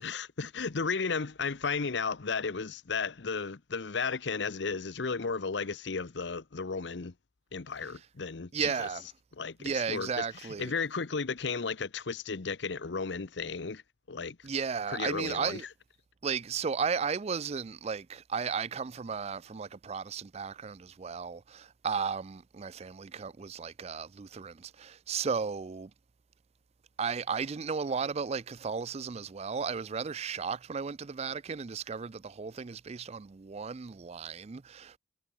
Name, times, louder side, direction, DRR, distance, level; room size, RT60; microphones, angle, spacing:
voice 1, 0.0-7.1 7.5-8.9 9.4-10.2 10.6-13.8 14.1-14.4 14.9-15.6, left 5 dB, 70° left, 0.8 m, -34 dB
voice 2, 8.5-9.1 9.6-10.7 14.4-15.7 16.2-25.9 27.0-35.0, right 6 dB, 35° right, 0.4 m, -34 dB
head